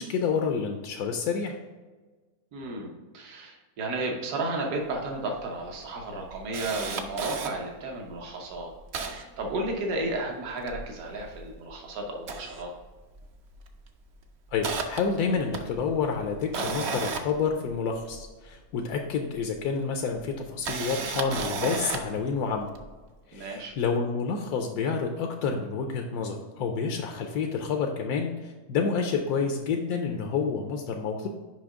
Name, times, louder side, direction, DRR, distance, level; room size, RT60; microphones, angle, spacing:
voice 1, 0.0-1.5 14.5-22.7 23.3-31.3, left 5 dB, 85° left, 3 dB, 1.1 m, -29 dB
voice 2, 2.5-8.7 9.1-12.7 23.3-23.7, right 2 dB, 75° right, 1 dB, 1.4 m, -33 dB
Camera, 4.9-5.0 5.3-5.4 5.9-7.5 8.1-8.2 8.5-10.1 10.5-11.7 12.1-13.3 13.5-13.8 14.2-18.3 19.3-19.4 20.4-22.2 22.7-22.9, right 4 dB, 60° right, 0.8 m, -34 dB
6.0 x 5.2 x 3.6 m, 1.3 s
omnidirectional pair, 1.6 m